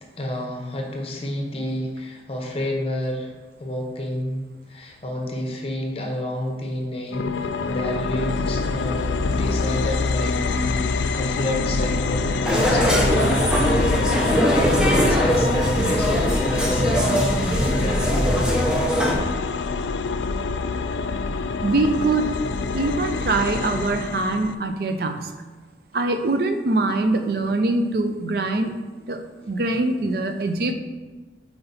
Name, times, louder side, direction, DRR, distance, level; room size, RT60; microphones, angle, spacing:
voice 1, 0.0-3.3 3.6-18.8, left 1 dB, 35° left, 1 dB, 0.8 m, -30 dB
sound 1, 7.1-24.5, left 4 dB, 85° left, 0.3 m, -26 dB
sound 2, 12.4-19.2, equal, 5° right, 0.6 m, -21 dB
voice 2, 21.6-22.3 22.7-25.3 25.9-28.8 29.1-30.7, right 2 dB, 55° right, 7 dB, 0.5 m, -23 dB
5.6 x 4.4 x 4.0 m, 1.3 s
head